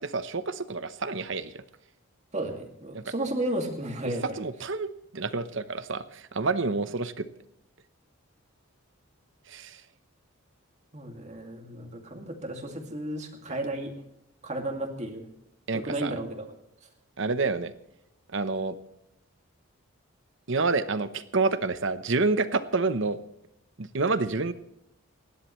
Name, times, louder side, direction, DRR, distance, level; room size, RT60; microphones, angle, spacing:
voice 1, 0.0-1.6 2.9-3.0 4.0-7.3 9.5-9.8 15.7-16.1 17.2-17.7 18.3-18.7 20.5-23.2 23.8-24.5, right 3 dB, 60° right, 12 dB, 0.9 m, -28 dB
voice 2, 2.3-4.4 10.9-13.9 14.4-15.3 15.7-16.5, right 1 dB, 30° right, 3 dB, 2.3 m, -33 dB
27.5 x 11.0 x 3.2 m, 0.81 s
head